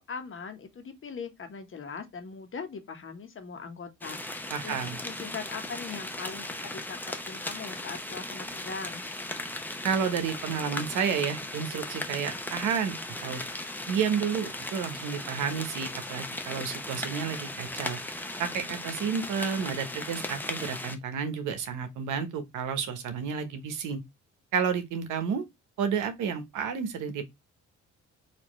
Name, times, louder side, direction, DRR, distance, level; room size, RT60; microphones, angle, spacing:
voice 1, 0.0-9.1, left 5 dB, 45° left, 1.2 m, -41 dB
sound 1, 4.0-21.0, left 1 dB, 5° left, 0.7 m, -37 dB
voice 2, 4.5-5.0 9.8-13.0 13.2-13.4 13.9-18.0 18.4-24.0 24.5-25.4 25.8-27.2, right 7 dB, 85° right, 1.0 m, -31 dB
4.2 x 2.7 x 3.0 m
cardioid pair, 90°, 30 cm